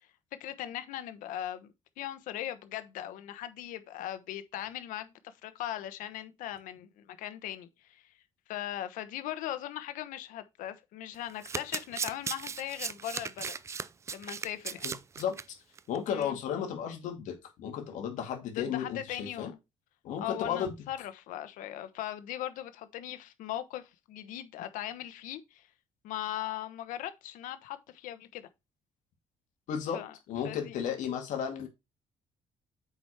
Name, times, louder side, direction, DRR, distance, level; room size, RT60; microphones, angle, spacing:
voice 1, 0.4-1.7 2.0-8.0 8.5-13.5 14.1-14.9 16.1-16.4 18.5-19.5 20.2-25.7 26.0-28.5 29.9-30.1 30.4-30.7, left 12 dB, 90° left, 1.1 m, -39 dB
Domestic sounds home sounds, 11.1-15.4 15.8-16.2, right 5 dB, 20° right, 0.4 m, -37 dB
voice 2, 14.8-15.4 15.9-19.5 20.0-20.7 29.7-30.0 30.3-31.7, left 8 dB, 70° left, 2.3 m, -34 dB
7.9 x 5.1 x 4.4 m
cardioid pair, 165°, 13 cm